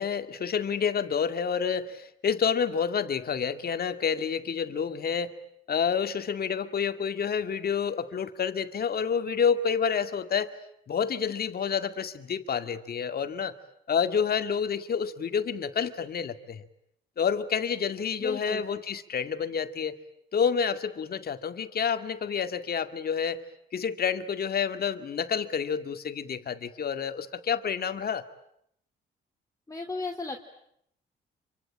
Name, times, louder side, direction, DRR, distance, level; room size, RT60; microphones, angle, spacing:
voice 1, 0.0-5.4 5.7-10.5 10.9-13.5 13.9-16.6 17.2-20.0 20.3-23.4 23.7-28.2, left 7 dB, 50° left, 9 dB, 2.2 m, -29 dB
voice 2, 18.2-18.6 29.7-30.5, left 3 dB, 15° left, 2 dB, 2.8 m, -35 dB
27.0 x 25.0 x 8.9 m, 0.74 s
cardioid pair, 90°, 20 cm